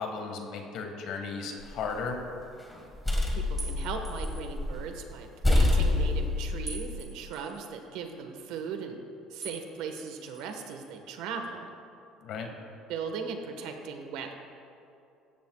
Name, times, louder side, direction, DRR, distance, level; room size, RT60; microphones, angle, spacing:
voice 1, 0.0-2.2 12.2-12.5, left 5 dB, 60° left, 3 dB, 1.7 m, -35 dB
sound 1, 1.6-2.2 2.7-4.8 5.1-5.2 5.4-6.9, left 2 dB, 5° left, 1.6 m, -27 dB
voice 2, 3.0-9.0 9.3-11.7 12.9-14.3, right 6 dB, 75° right, 5 dB, 1.4 m, -38 dB
sound 2, 3.6-4.6 6.7-7.7 9.4-9.7 10.0-10.9, right 3 dB, 20° right, 2.5 m, -44 dB
17.0 x 14.0 x 2.4 m, 2.6 s
cardioid pair, 160°, 0 cm